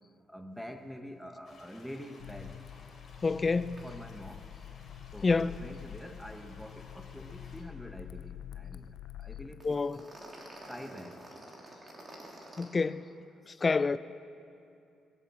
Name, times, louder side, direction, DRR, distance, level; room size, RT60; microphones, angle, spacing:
voice 1, 0.3-2.6 3.8-4.4 5.1-8.9 9.2-10.0 10.7-11.2, equal, ahead, 1.0 m, -46 dB
sound 1, 1.4-7.6, left 3 dB, 55° left, 3.3 m, -57 dB
sound 2, 2.2-9.7, left 10 dB, 85° left, 0.5 m, -46 dB
voice 2, 3.2-3.8 5.2-5.5 9.6-10.0 12.6-13.0 13.5-14.0, left 4 dB, 30° left, 0.4 m, -28 dB
sound 3, 3.8-3.9 4.2-4.3 4.6-4.7 9.6-12.6, right 1 dB, 30° right, 3.2 m, -49 dB
22.0 x 8.0 x 7.4 m
cardioid pair, 90°, 0 cm